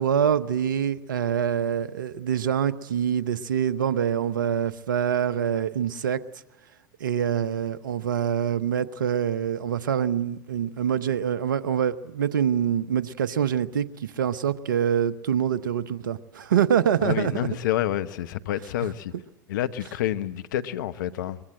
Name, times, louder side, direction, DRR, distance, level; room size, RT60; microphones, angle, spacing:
voice 1, 0.0-6.2 7.0-17.3, right 9 dB, 85° right, 0.9 m, -25 dB
voice 2, 17.0-19.1 19.5-21.4, left 12 dB, 75° left, 1.0 m, -28 dB
23.5 x 21.5 x 7.7 m
hypercardioid pair, 80°, 10 cm